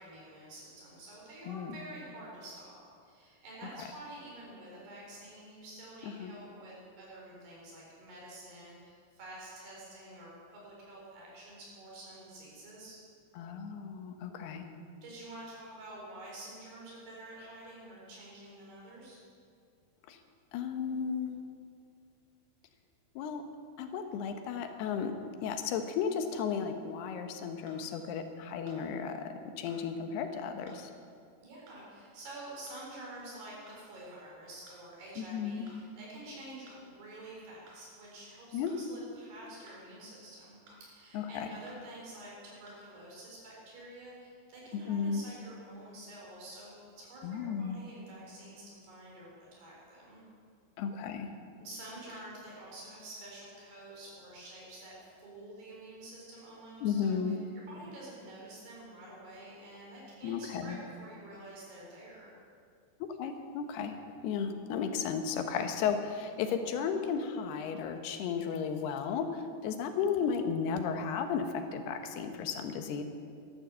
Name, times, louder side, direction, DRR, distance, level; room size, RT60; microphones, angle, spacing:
voice 1, 0.0-13.0 15.0-19.2 31.4-50.2 51.6-62.3, right 1 dB, 75° right, -4 dB, 6.5 m, -48 dB
voice 2, 1.4-1.8 6.0-6.3 13.4-14.7 20.1-20.2 20.5-21.5 23.2-23.5 23.8-25.1 25.4-30.9 35.2-35.7 38.5-38.8 41.1-41.6 44.7-45.2 47.2-47.8 50.8-51.3 56.8-57.4 60.2-60.8 63.0-73.0, left 6 dB, 80° left, 7 dB, 2.9 m, -34 dB
sound 1, 27.7-27.8 28.7-28.8 29.7-29.8 30.7-30.8 31.7-31.8 32.7-32.8 33.7-33.8 34.7-34.8 35.7-35.8 36.7-36.8 37.7-37.8 38.7-38.8 39.7-39.8 40.7-40.8 41.7-41.8 42.7-42.8, right 1 dB, 50° right, 5.3 m, -57 dB
13.0 x 12.0 x 7.4 m, 2.3 s
omnidirectional pair, 4.7 m